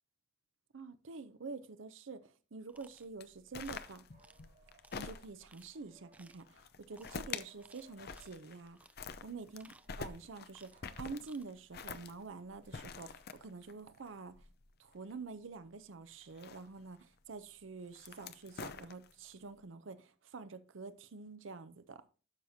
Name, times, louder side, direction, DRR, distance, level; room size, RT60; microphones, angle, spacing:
voice 1, 0.7-4.0 5.0-8.8 9.2-14.3 14.8-22.0, right 4 dB, 75° right, 0.6 m, -47 dB
sound 1, 2.7-3.1 3.6-3.9 4.2-4.4 4.8-5.0 5.4-5.7 6.1-6.5 6.9-7.2 7.6-8.3 8.8-9.0 9.4-10.2 10.5-10.9 11.1-11.5, right 2 dB, 5° right, 0.4 m, -62 dB
sound 2, 3.2-5.6 6.5-7.5 7.8-8.7 8.9-15.1 16.2-17.0 17.8-19.3, left 5 dB, 55° left, 0.6 m, -46 dB
sound 3, 4.1-5.1 5.7-6.6 7.2-8.5 9.6-11.1, right 3 dB, 45° right, 2.3 m, -67 dB
12.0 x 6.5 x 2.7 m
head